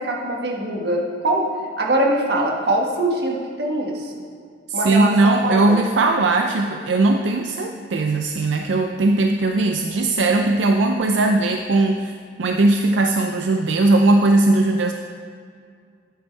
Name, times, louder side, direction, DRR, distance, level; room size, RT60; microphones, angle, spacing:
voice 1, 0.0-1.5 1.8-4.2 4.7-5.8, right 1 dB, 60° right, -1 dB, 1.5 m, -22 dB
voice 2, 4.7-12.1 12.4-14.9, right 2 dB, 85° right, 5 dB, 0.5 m, -18 dB
11.0 x 7.9 x 4.5 m, 2.2 s
head